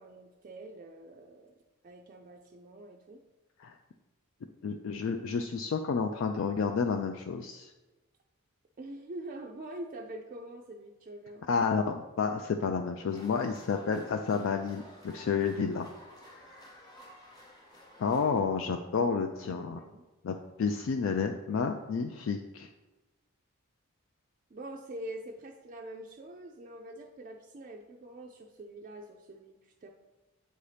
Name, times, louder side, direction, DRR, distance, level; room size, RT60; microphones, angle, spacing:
voice 1, 0.0-1.5 1.8-3.2 8.8-11.5 19.5-20.0 24.5-29.9, right 1 dB, 40° right, 1 dB, 0.4 m, -45 dB
voice 2, 4.6-7.7 11.5-15.9 16.3-16.4 18.0-19.8 20.2-22.7, left 5 dB, 60° left, 5 dB, 0.3 m, -30 dB
sound 1, 13.1-18.4, equal, 20° left, 0.9 m, -53 dB
7.7 x 2.7 x 4.9 m, 1.1 s
head